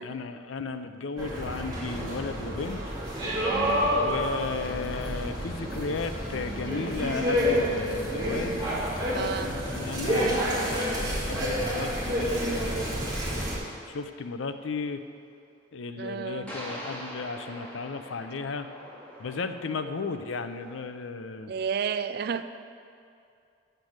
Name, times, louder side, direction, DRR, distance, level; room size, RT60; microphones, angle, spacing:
voice 1, 0.0-2.8 4.0-8.6 9.6-13.5 13.9-15.0 15.7-18.7 19.2-21.5, left 4 dB, 85° left, 9 dB, 0.5 m, -34 dB
sound 1, 1.2-13.6, equal, 20° right, 2.3 m, -29 dB
voice 2, 3.5-3.9 9.1-9.6 16.0-16.6 21.5-22.4, right 6 dB, 55° right, 11 dB, 0.4 m, -32 dB
sound 2, 4.6-13.0, left 1 dB, 50° left, 0.9 m, -42 dB
sound 3, 16.5-20.8, equal, 10° left, 1.6 m, -43 dB
7.9 x 6.7 x 7.3 m, 2.4 s
head